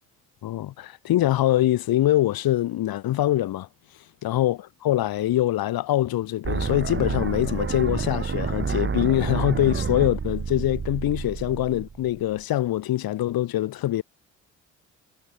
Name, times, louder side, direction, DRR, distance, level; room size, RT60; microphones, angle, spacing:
voice 1, 0.4-3.7 4.2-14.0, left 14 dB, 55° left, 1.2 m, -24 dB
sound 1, 6.4-12.4, right 6 dB, 30° right, 1.4 m, -29 dB
hypercardioid pair, 50°, 42 cm